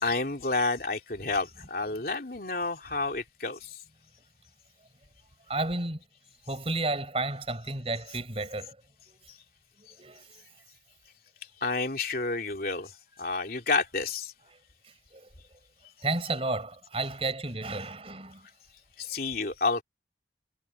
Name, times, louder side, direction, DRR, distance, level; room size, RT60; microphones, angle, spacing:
voice 1, 0.0-3.8 11.6-14.3 19.0-19.8, left 3 dB, 55° left, 3.1 m, -30 dB
voice 2, 5.5-6.0 6.5-8.8 9.1-9.2 10.0-10.2 15.1-15.3 16.0-18.5, right 2 dB, 35° right, 5.3 m, -32 dB
head